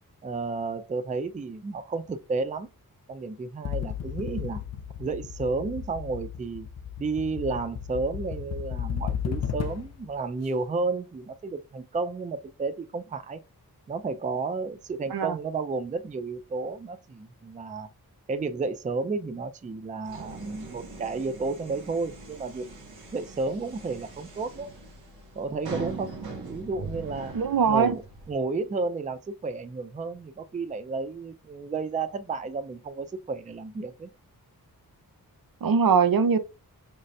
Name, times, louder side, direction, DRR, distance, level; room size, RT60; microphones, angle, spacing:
voice 1, 0.2-2.7 3.1-4.6 5.0-6.7 7.0-13.4 13.9-17.9 18.3-22.7 23.1-24.7 25.4-26.1 26.4-27.3 27.7-28.0 28.3-34.1, right 4 dB, 20° right, 0.4 m, -32 dB
sound 1, 3.7-10.0, left 8 dB, 45° left, 0.5 m, -34 dB
sound 2, 20.1-28.3, right 4 dB, 85° right, 1.7 m, -41 dB
voice 2, 27.3-28.0 35.6-36.4, right 6 dB, 70° right, 0.7 m, -21 dB
5.3 x 3.2 x 2.6 m
wide cardioid pair, 150°, 36 cm